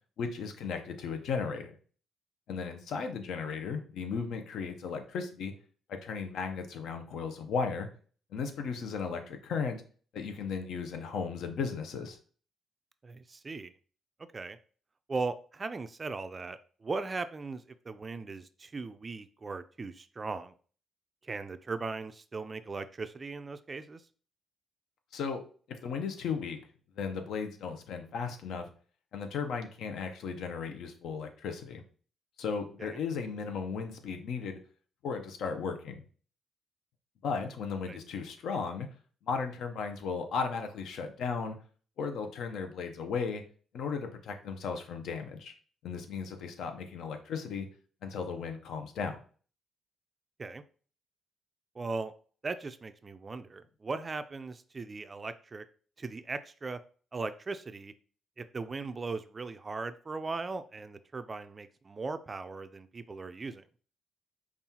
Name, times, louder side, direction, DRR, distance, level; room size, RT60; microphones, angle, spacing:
voice 1, 0.2-1.7 2.5-5.5 5.9-7.9 8.3-9.8 10.1-12.2 25.1-25.4 25.7-26.6 27.0-28.7 29.1-31.8 32.4-34.6 35.0-36.0 37.2-38.9 39.2-41.6 42.0-43.4 43.7-45.5 45.8-47.7 48.0-49.2, left 5 dB, 75° left, 6 dB, 0.7 m, -35 dB
voice 2, 13.0-13.7 14.3-14.6 15.1-20.5 21.2-24.0 32.8-33.0 37.8-38.0 50.4-50.6 51.7-52.1 52.4-55.7 56.0-56.8 57.1-57.9 58.4-63.7, right 3 dB, 30° right, 11 dB, 0.3 m, -38 dB
5.4 x 2.4 x 2.8 m, 0.41 s
cardioid pair, 90°, 0 cm